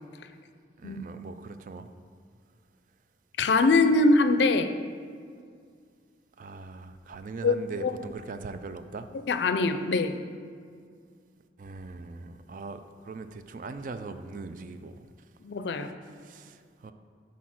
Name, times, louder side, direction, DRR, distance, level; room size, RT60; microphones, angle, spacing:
voice 1, 0.8-1.9 6.4-9.1 11.6-15.1 16.0-16.9, right 4 dB, 45° right, 9 dB, 0.3 m, -40 dB
voice 2, 3.4-4.7 7.4-7.6 7.8-7.9 9.3-10.1 15.4-16.0, left 3 dB, 75° left, 9 dB, 0.4 m, -22 dB
6.3 x 4.1 x 5.9 m, 2.1 s
head